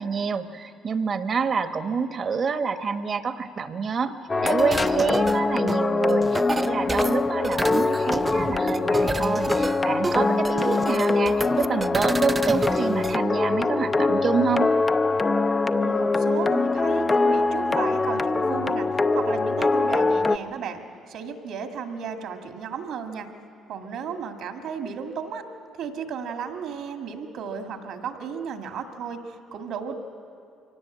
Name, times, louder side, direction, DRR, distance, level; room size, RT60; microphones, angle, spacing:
voice 1, 0.0-4.1 4.4-14.7, right 5 dB, 45° right, 9 dB, 1.2 m, -27 dB
sound 1, 4.3-20.4, left 3 dB, 30° left, 0.6 m, -23 dB
sound 2, 4.4-13.2, right 3 dB, 25° right, 0.4 m, -31 dB
voice 2, 15.8-18.9 19.1-23.3 23.7-25.4 25.7-30.0, right 6 dB, 75° right, 4 dB, 2.1 m, -34 dB
24.0 x 17.5 x 8.5 m, 2.4 s
supercardioid pair, 70°, 0 cm